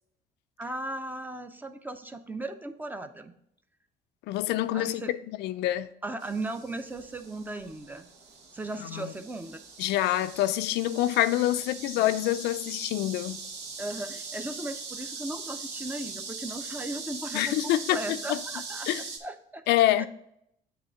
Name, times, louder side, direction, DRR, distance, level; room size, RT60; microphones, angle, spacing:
voice 1, 0.6-3.3 4.7-5.1 6.0-8.1 8.5-9.6 11.8-12.1 13.8-18.9 19.2-19.6 20.0-20.1, right 2 dB, 10° right, 0.6 m, -37 dB
voice 2, 4.3-5.9 8.8-9.1 9.8-13.4 17.3-18.0 18.3-18.4 18.9-19.0 19.7-20.1, left 14 dB, 80° left, 0.4 m, -26 dB
sound 1, 6.2-19.2, right 4 dB, 85° right, 1.2 m, -41 dB
7.9 x 3.3 x 5.6 m
cardioid pair, 110°, 17 cm